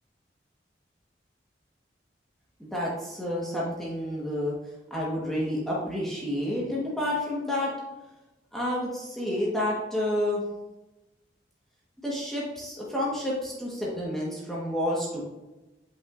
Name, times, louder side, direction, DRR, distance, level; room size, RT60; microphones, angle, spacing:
voice 1, 2.6-4.6 4.9-7.7 8.5-10.4 12.0-15.2, left 1 dB, ahead, -6 dB, 1.4 m, -29 dB
8.9 x 5.3 x 2.6 m, 1.0 s
head